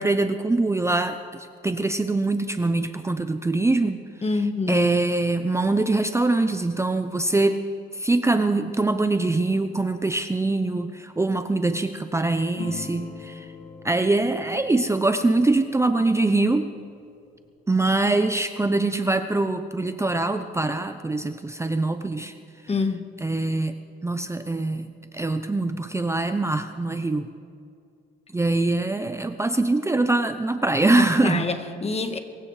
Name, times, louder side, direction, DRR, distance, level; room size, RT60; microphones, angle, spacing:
voice 1, 0.0-4.0 4.7-7.6 7.9-13.5 13.8-16.7 17.7-22.3 23.2-23.7 24.0-27.3 28.3-31.5, right 2 dB, 15° right, 9 dB, 0.6 m, -23 dB
voice 2, 4.2-4.9 22.7-23.1 30.9-32.2, left 4 dB, 30° left, 8 dB, 1.4 m, -26 dB
sound 1, 12.6-17.5, left 5 dB, 65° left, 3.1 m, -43 dB
23.0 x 16.0 x 3.3 m, 2.5 s
cardioid pair, 90°, 20 cm